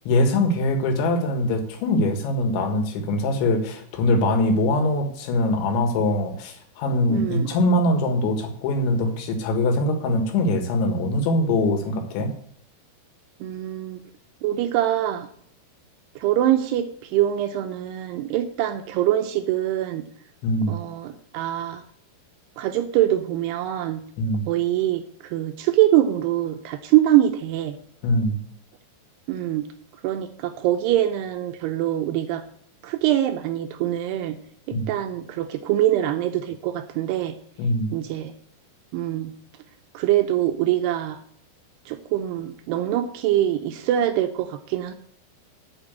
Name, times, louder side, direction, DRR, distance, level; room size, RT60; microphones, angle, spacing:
voice 1, 0.1-12.3 20.4-20.8 24.2-24.5 28.0-28.4 34.7-34.9 37.6-37.9, left 1 dB, 80° left, 5 dB, 3.9 m, -22 dB
voice 2, 7.1-7.5 13.4-14.0 14.4-15.3 16.2-20.1 20.7-21.8 22.6-24.0 24.5-27.8 29.3-29.7 30.0-32.4 32.8-34.4 34.7-37.4 37.9-38.3 38.9-39.3 39.9-41.2 41.9-44.9, right 12 dB, 80° right, 7 dB, 2.5 m, -24 dB
8.8 x 7.3 x 8.2 m, 0.63 s
omnidirectional pair, 5.2 m